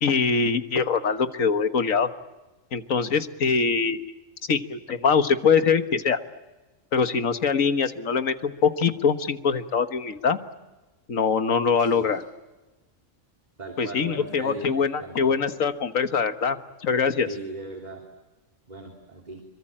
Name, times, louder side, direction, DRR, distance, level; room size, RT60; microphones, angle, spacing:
voice 1, 0.0-2.1 2.7-4.1 4.5-6.2 6.9-10.4 11.1-12.2 13.8-16.6 16.8-17.3, left 5 dB, 85° left, 9 dB, 1.8 m, -23 dB
voice 2, 11.7-12.2 13.6-15.4 17.2-18.0 18.7-19.4, right 2 dB, 30° right, 2 dB, 3.3 m, -38 dB
27.0 x 24.0 x 8.8 m, 1.1 s
omnidirectional pair, 1.4 m